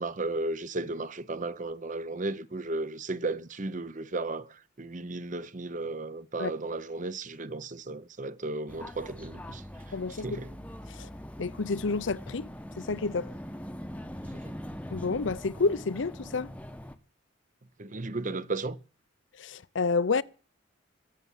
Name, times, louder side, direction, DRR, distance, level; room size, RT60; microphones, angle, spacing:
voice 1, 0.0-10.6 14.3-14.6 17.8-18.8, right 2 dB, 40° right, 0.8 m, -35 dB
sound 1, 8.7-17.0, equal, 5° left, 0.9 m, -42 dB
voice 2, 9.9-10.4 11.0-11.1 11.4-12.5 12.8-13.3 14.9-16.5 19.4-20.2, left 4 dB, 70° left, 0.6 m, -29 dB
21.0 x 7.6 x 7.3 m
head